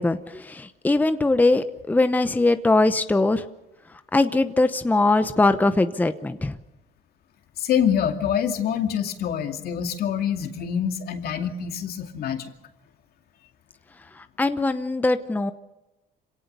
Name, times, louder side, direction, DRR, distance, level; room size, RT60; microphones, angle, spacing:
voice 1, 0.0-3.5 4.1-6.6 14.2-15.5, left 2 dB, 10° left, 10 dB, 0.8 m, -21 dB
voice 2, 7.6-12.5, left 8 dB, 65° left, 6 dB, 2.4 m, -25 dB
26.5 x 18.0 x 6.8 m, 1.0 s
cardioid pair, 110°, 17 cm